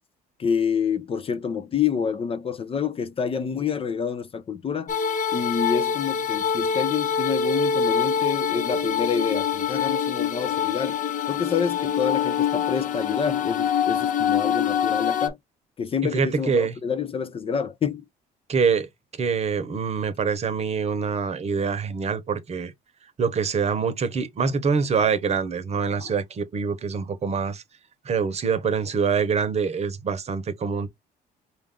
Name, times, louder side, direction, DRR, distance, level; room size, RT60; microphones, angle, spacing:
voice 1, 0.4-4.9 5.3-11.0 11.3-15.4 15.8-18.0 26.0-26.1, left 7 dB, 35° left, 0.5 m, -27 dB
sound 1, 4.9-15.3, left 7 dB, 50° left, 0.9 m, -25 dB
voice 2, 16.1-16.8 18.5-18.9 19.2-22.7 23.2-27.6 28.0-30.9, right 5 dB, 40° right, 0.9 m, -25 dB
4.9 x 2.5 x 3.6 m
cardioid pair, 110°, 17 cm